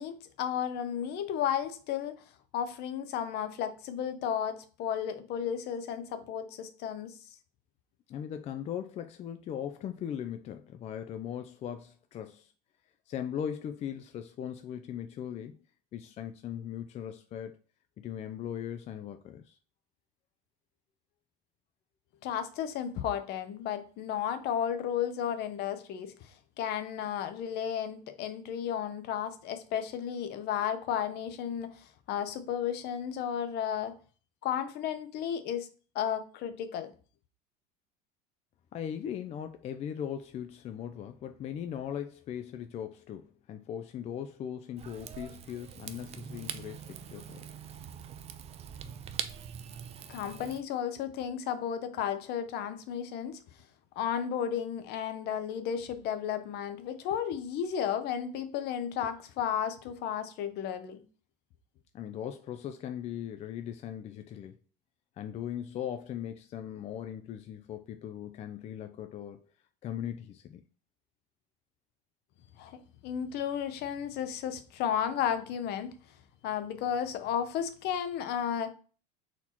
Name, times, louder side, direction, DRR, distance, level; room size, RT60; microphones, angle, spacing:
voice 1, 0.0-2.2 2.5-7.1 22.2-34.0 34.4-35.7 35.9-36.9 50.1-53.4 54.0-61.0 72.6-75.9 76.4-78.7, left 9 dB, 55° left, 0.7 m, -33 dB
voice 2, 8.1-12.5 13.1-15.6 15.9-17.6 18.0-19.6 38.7-47.5 61.9-64.6 65.2-69.5 69.8-70.6, left 9 dB, 35° left, 0.4 m, -39 dB
Rain / Fire, 44.8-50.6, right 8 dB, 30° right, 0.4 m, -43 dB
4.2 x 2.8 x 4.3 m
supercardioid pair, 110°, 20 cm